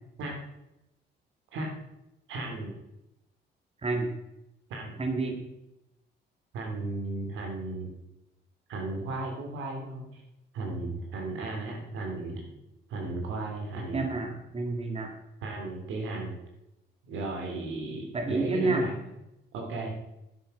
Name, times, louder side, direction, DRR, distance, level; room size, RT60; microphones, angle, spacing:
voice 1, 2.3-2.8 4.7-5.0 6.5-7.9 8.7-10.0 10.5-12.4 12.9-14.1 15.4-16.4 17.1-19.0 19.5-20.0, right 2 dB, 90° right, 1 dB, 3.2 m, -35 dB
voice 2, 3.8-4.1 5.0-5.4 13.9-15.1 18.1-18.9, right 3 dB, 30° right, 4 dB, 2.0 m, -29 dB
12.0 x 7.3 x 5.2 m, 0.90 s
cardioid pair, 90°, 20 cm